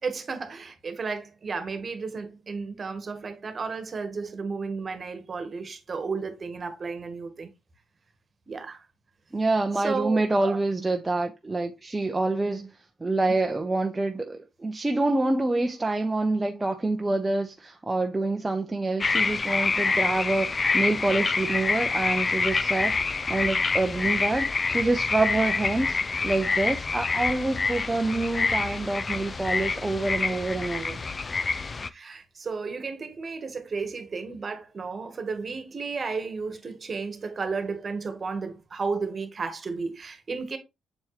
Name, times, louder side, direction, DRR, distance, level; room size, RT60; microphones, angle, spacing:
voice 1, 0.0-7.5 8.5-8.8 9.8-10.6 31.9-40.6, right 4 dB, 40° right, 1.5 m, -33 dB
voice 2, 9.3-12.7 13.0-26.0 26.2-31.0, right 2 dB, 15° right, 0.7 m, -27 dB
sound 1, 19.0-31.9, left 4 dB, 30° left, 0.4 m, -27 dB
7.2 x 4.3 x 3.2 m
cardioid pair, 90°, 0 cm